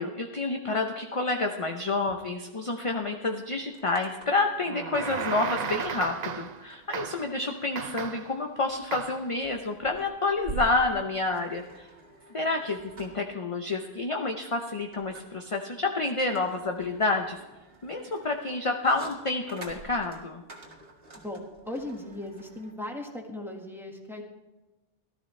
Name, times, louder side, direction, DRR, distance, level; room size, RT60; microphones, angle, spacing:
voice 1, 0.0-11.9 12.3-17.4 17.8-20.4, left 3 dB, 35° left, 3 dB, 0.8 m, -29 dB
sound 1, 2.9-3.0 3.3-4.5 5.6-22.7, right 3 dB, 65° right, 2.2 m, -47 dB
sound 2, 4.6-6.6 6.9-7.3 7.7-8.4 8.9-9.3, right 6 dB, 50° right, 0.7 m, -34 dB
voice 2, 21.1-24.2, left 1 dB, ahead, 0 dB, 1.6 m, -38 dB
18.0 x 13.0 x 3.3 m, 1.1 s
omnidirectional pair, 1.1 m